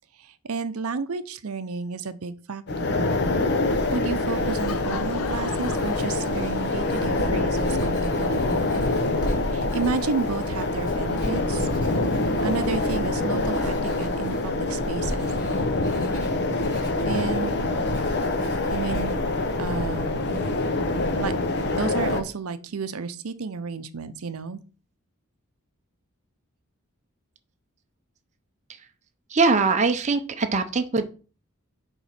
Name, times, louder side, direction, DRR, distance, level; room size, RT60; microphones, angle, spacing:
voice 1, 0.2-3.0 3.9-8.6 9.4-11.7 12.4-15.3 17.0-17.6 18.7-19.2 19.6-20.4 21.2-21.3 21.8-24.6, right 4 dB, 75° right, 13 dB, 0.6 m, -31 dB
sound 1, 2.7-22.2, left 2 dB, 50° left, 0.9 m, -25 dB
Writing, 3.7-19.8, equal, 20° left, 3.2 m, -36 dB
Laughter / Crowd, 4.1-7.0, left 6 dB, 75° left, 0.6 m, -38 dB
voice 2, 29.3-31.1, right 4 dB, 30° right, 6 dB, 0.6 m, -22 dB
7.1 x 3.6 x 5.9 m, 0.37 s
head